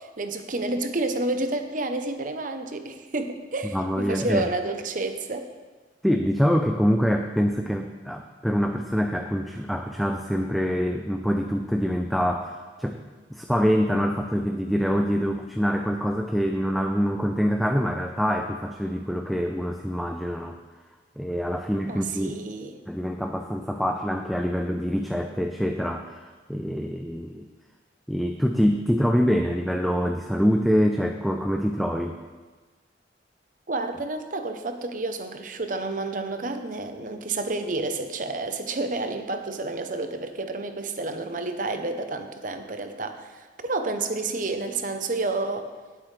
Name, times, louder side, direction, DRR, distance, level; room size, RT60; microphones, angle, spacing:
voice 1, 0.0-5.5 21.9-22.8 33.7-45.7, right 2 dB, 50° right, 7 dB, 0.8 m, -30 dB
voice 2, 3.7-4.4 6.0-13.0 13.3-20.6 21.2-22.4 22.9-27.5 28.1-32.2, equal, ahead, 4 dB, 0.4 m, -25 dB
18.0 x 7.9 x 3.3 m, 1.3 s
head